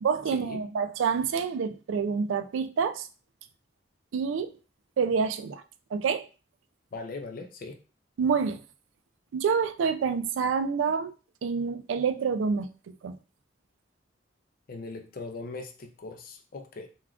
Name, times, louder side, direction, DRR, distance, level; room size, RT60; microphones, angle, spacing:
voice 1, 0.0-3.1 4.1-4.5 5.0-5.6 5.9-6.2 8.2-8.6 9.3-11.1 11.4-13.2, right 6 dB, 80° right, 0.3 m, -27 dB
voice 2, 6.9-7.8 14.7-16.9, left 3 dB, 50° left, 0.4 m, -40 dB
3.5 x 2.3 x 2.3 m
head